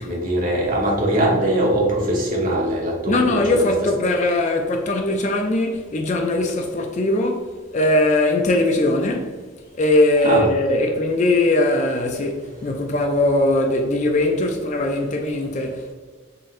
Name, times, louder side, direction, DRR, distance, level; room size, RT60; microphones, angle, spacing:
voice 1, 0.0-3.7 10.2-10.5, right 1 dB, 40° right, 1.0 m, -21 dB
voice 2, 3.1-9.4 9.8-15.9, left 1 dB, 35° left, 0.3 m, -20 dB
4.0 x 3.8 x 2.5 m
head